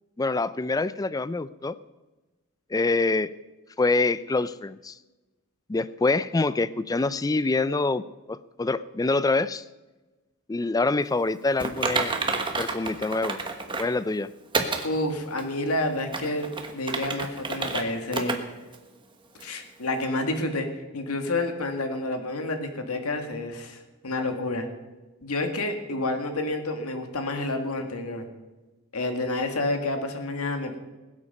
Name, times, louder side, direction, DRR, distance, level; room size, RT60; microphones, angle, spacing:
voice 1, 0.2-1.8 2.7-3.3 3.8-4.9 5.7-8.0 8.3-9.6 10.5-12.1 12.6-13.4 13.8-14.3, left 3 dB, 15° left, 16 dB, 0.4 m, -25 dB
Typing, 11.6-13.9 14.5-14.9 15.4-15.5 16.0-17.8 18.1-18.4 18.7-18.8 19.4-19.5, right 3 dB, 20° right, 1.3 m, -29 dB
voice 2, 14.8-18.4 19.4-24.7 25.2-28.3 28.9-30.8, left 2 dB, 80° left, 5 dB, 1.9 m, -29 dB
20.5 x 8.4 x 5.4 m, 1.2 s
head